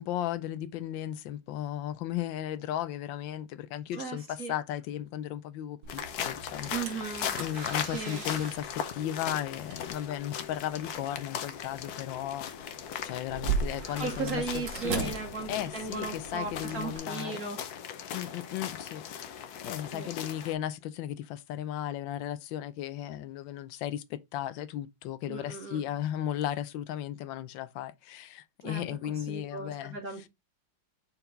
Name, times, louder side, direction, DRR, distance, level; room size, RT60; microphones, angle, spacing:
voice 1, 0.0-7.1 7.4-15.1 15.5-17.4 18.1-30.3, left 11 dB, 85° left, 1.4 m, -36 dB
voice 2, 3.9-4.5 6.7-7.3 7.8-8.2 14.0-17.6 19.9-20.1 25.3-25.8 28.6-28.8 29.2-30.3, right 4 dB, 55° right, 1.5 m, -36 dB
sound 1, 5.8-17.0, right 5 dB, 70° right, 1.8 m, -40 dB
sound 2, 5.9-20.5, left 8 dB, 65° left, 1.2 m, -38 dB
5.5 x 4.5 x 3.8 m
omnidirectional pair, 2.0 m